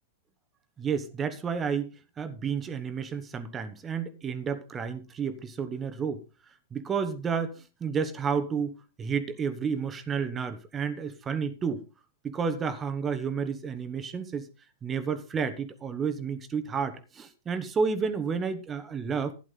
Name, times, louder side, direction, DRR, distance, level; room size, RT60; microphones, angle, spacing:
voice 1, 0.8-1.9 2.2-6.2 6.7-8.7 9.0-11.8 12.2-14.5 14.8-19.3, right 6 dB, 20° right, 1.2 m, -31 dB
12.0 x 10.5 x 3.9 m
figure-of-eight pair, 105°, 0 cm